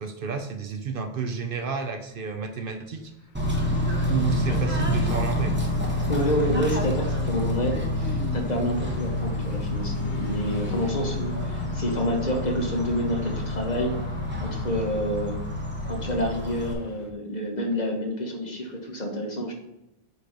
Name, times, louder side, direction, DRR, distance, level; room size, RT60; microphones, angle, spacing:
voice 1, 0.0-3.1 4.0-5.6, right 5 dB, 60° right, 6 dB, 0.8 m, -30 dB
Car passing by / Truck, 2.9-17.1, left 2 dB, 85° left, 1.2 m, -43 dB
Bird / Train, 3.3-16.7, left 1 dB, 10° right, 1.0 m, -28 dB
voice 2, 6.1-14.0 14.4-15.4 15.9-19.5, equal, 40° left, 1 dB, 1.3 m, -28 dB
8.2 x 3.0 x 5.1 m, 0.91 s
omnidirectional pair, 1.1 m